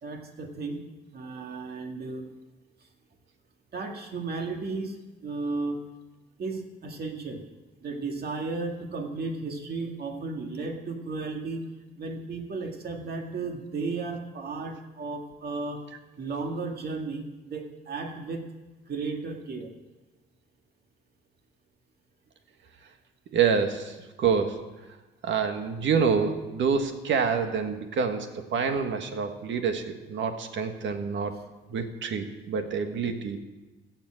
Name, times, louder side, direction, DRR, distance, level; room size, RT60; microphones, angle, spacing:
voice 1, 0.0-0.8 1.1-2.3 3.7-5.0 5.2-5.8 6.4-7.4 7.8-11.6 12.0-15.8 16.2-18.4 18.9-19.7, right 3 dB, 55° right, 3 dB, 2.1 m, -34 dB
voice 2, 23.3-24.6 25.2-31.3 31.7-33.5, right 6 dB, 70° right, 6 dB, 1.6 m, -27 dB
15.5 x 7.4 x 7.6 m, 1.1 s
cardioid pair, 90°, 20 cm